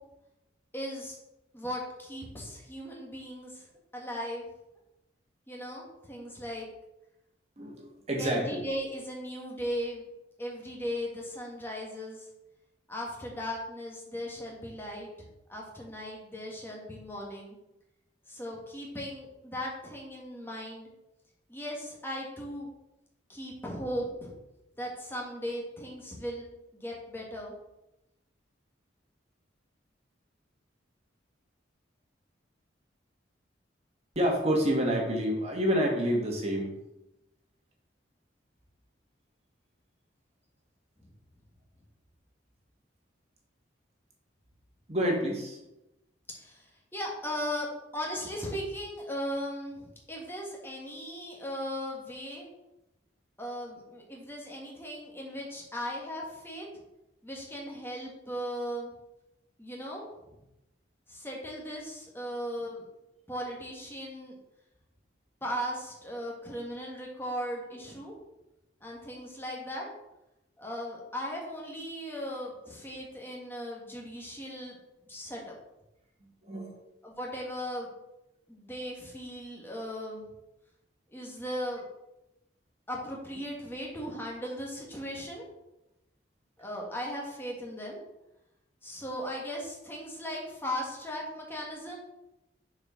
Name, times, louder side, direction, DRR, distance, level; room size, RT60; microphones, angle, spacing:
voice 1, 0.7-1.2 1.5-3.6 3.9-4.4 5.5-6.7 8.2-10.1 10.4-12.3 12.9-15.1 15.5-17.6 18.3-20.9 21.5-22.7 23.3-24.3 24.8-26.5 26.7-27.5 46.3-52.5 53.4-56.7 57.2-58.9 59.6-60.1 61.1-62.8 63.3-64.3 65.4-68.1 68.8-69.9 70.6-74.8 75.1-75.6 77.0-77.9 78.5-80.2 81.1-81.8 82.9-85.4 86.6-88.0 88.8-92.0, equal, 10° left, -2 dB, 1.7 m, -37 dB
voice 2, 7.6-8.6 34.1-36.8 44.9-45.6 76.2-76.8, equal, 35° right, 0 dB, 1.7 m, -28 dB
6.5 x 4.7 x 6.1 m, 0.93 s
head